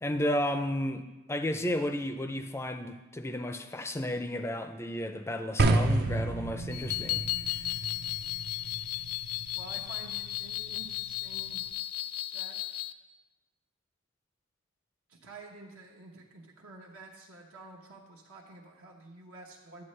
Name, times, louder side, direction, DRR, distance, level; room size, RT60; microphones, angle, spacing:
voice 1, 0.0-7.2 7.6-7.7, left 1 dB, 10° left, 8 dB, 0.4 m, -33 dB
sound 1, 5.6-11.7, right 2 dB, 50° right, 0.5 m, -32 dB
sound 2, 6.7-12.9, left 15 dB, 75° left, 0.3 m, -35 dB
voice 2, 9.5-11.6 12.3-12.6 15.1-19.8, right 3 dB, 75° right, -1 dB, 1.0 m, -49 dB
9.4 x 8.3 x 3.2 m, 1.1 s
head